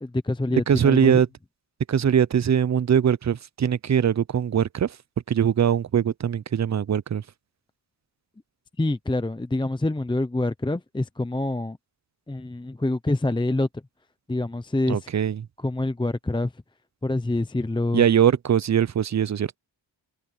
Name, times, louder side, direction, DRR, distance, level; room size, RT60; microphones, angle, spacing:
voice 1, 0.0-1.2 8.8-11.8 12.3-13.8 14.3-15.1 15.6-16.5 17.0-18.1, left 2 dB, 10° left, 0.7 m, -26 dB
voice 2, 0.7-1.3 1.9-4.9 5.3-7.2 14.9-15.4 17.9-19.6, right 8 dB, 40° right, 0.6 m, -21 dB
cardioid pair, 80°, 46 cm